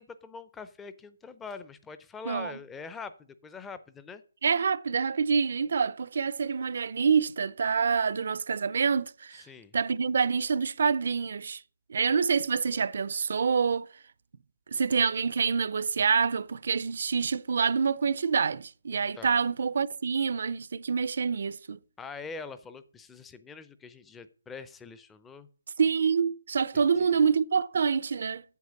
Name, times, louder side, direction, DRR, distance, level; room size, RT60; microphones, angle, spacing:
voice 1, 0.0-4.2 9.4-9.7 19.2-19.4 22.0-25.5 26.7-27.1, left 5 dB, 10° left, 0.5 m, -44 dB
voice 2, 2.3-2.6 4.4-9.4 9.7-11.6 11.9-13.9 14.7-21.8 25.8-28.4, right 6 dB, 55° right, 0.5 m, -26 dB
8.3 x 7.7 x 6.4 m
hypercardioid pair, 165°, 0 cm